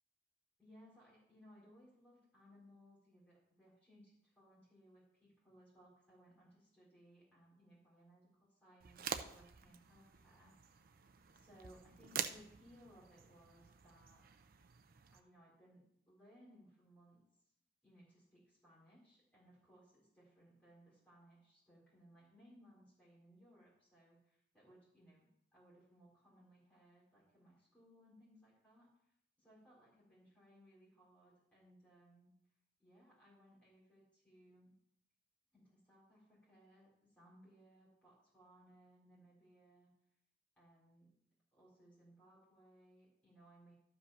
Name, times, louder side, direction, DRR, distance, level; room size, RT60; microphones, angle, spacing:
voice 1, 0.6-10.8 11.3-14.2 15.1-17.2 17.8-32.3 32.8-34.7 35.5-39.9 40.6-41.1 41.5-43.7, equal, 5° left, -8 dB, 4.1 m, -65 dB
sound 1, 8.8-15.2, right 7 dB, 45° right, 0.5 m, -47 dB
12.0 x 5.5 x 5.7 m, 0.74 s
head